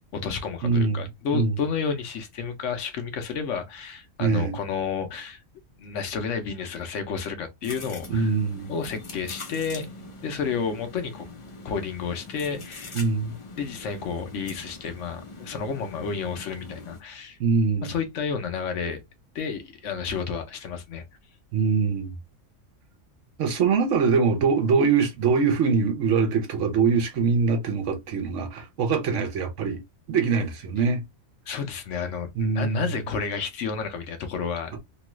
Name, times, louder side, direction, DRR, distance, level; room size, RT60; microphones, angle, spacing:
voice 1, 0.1-5.4 5.8-8.3 8.7-9.9 10.2-11.3 11.6-13.0 13.6-17.4 17.8-19.0 19.3-21.0 31.5-34.8, left 6 dB, 70° left, 1.0 m, -31 dB
voice 2, 0.6-1.6 4.2-4.6 8.1-8.7 12.9-13.3 17.4-17.9 21.5-22.1 23.4-29.8 30.1-31.0 32.4-32.9, right 5 dB, 70° right, 1.1 m, -23 dB
sound 1, 7.6-17.0, left 3 dB, 35° left, 0.5 m, -43 dB
3.0 x 2.3 x 2.9 m
omnidirectional pair, 1.3 m